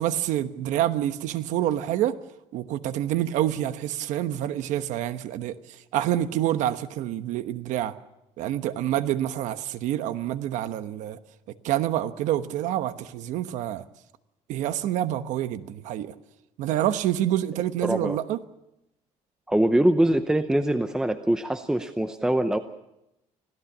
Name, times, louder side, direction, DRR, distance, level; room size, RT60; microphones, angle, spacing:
voice 1, 0.0-2.2 2.5-8.0 8.4-11.2 11.5-13.8 14.5-16.1 16.6-18.4, right 12 dB, 85° right, 1.1 m, -27 dB
voice 2, 17.8-18.2 19.5-22.6, right 1 dB, 5° right, 0.7 m, -23 dB
25.5 x 16.5 x 7.3 m
cardioid pair, 160°, 12 cm